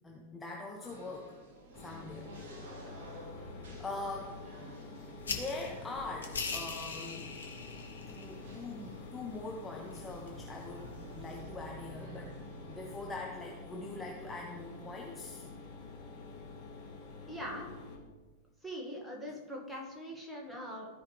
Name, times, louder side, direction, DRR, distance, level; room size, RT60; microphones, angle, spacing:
voice 1, 0.0-1.3 1.8-2.3 3.8-4.8 5.3-7.3 8.0-12.4 12.7-15.5, left 2 dB, 10° left, -1 dB, 1.0 m, -43 dB
sound 1, 0.8-13.2, right 2 dB, 55° right, 1.8 m, -52 dB
Mechanisms, 1.7-17.9, left 4 dB, 40° left, 2.3 m, -48 dB
sound 2, 5.2-11.4, left 5 dB, 70° left, 1.1 m, -43 dB
voice 2, 17.3-17.7 18.6-20.9, equal, 5° right, -2 dB, 2.0 m, -42 dB
14.5 x 5.1 x 3.3 m, 1.3 s
figure-of-eight pair, 90°, 0 cm